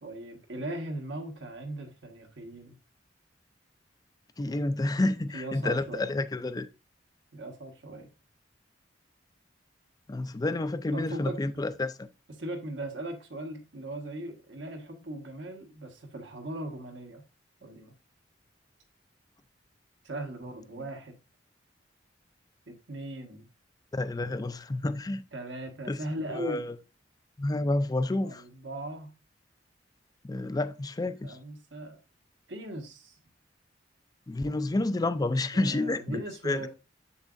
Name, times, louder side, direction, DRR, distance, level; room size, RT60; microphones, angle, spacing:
voice 1, 0.0-2.8 5.2-6.1 7.3-8.1 10.9-11.4 12.3-17.2 17.6-17.9 20.0-21.2 22.7-23.5 25.3-26.7 28.2-29.1 31.2-32.0 32.5-33.2 35.5-36.7, right 1 dB, 75° right, 1.5 m, -39 dB
voice 2, 4.4-6.7 10.1-12.1 23.9-25.2 25.9-26.0 26.3-26.7 27.4-28.4 30.2-31.4 34.3-36.6, left 2 dB, 20° left, 0.4 m, -29 dB
7.1 x 6.9 x 2.5 m
head